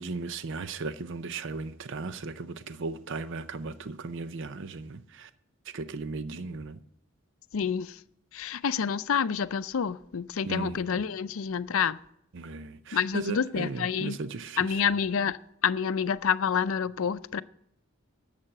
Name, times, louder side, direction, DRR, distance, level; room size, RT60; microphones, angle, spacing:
voice 1, 0.0-5.3 5.7-6.8 10.5-11.1 12.3-14.8, right 3 dB, 60° right, 0.6 m, -36 dB
voice 2, 7.5-8.0 8.3-12.0 12.9-14.2 14.6-15.4 15.6-17.4, left 7 dB, 70° left, 0.5 m, -28 dB
11.5 x 7.4 x 7.6 m
head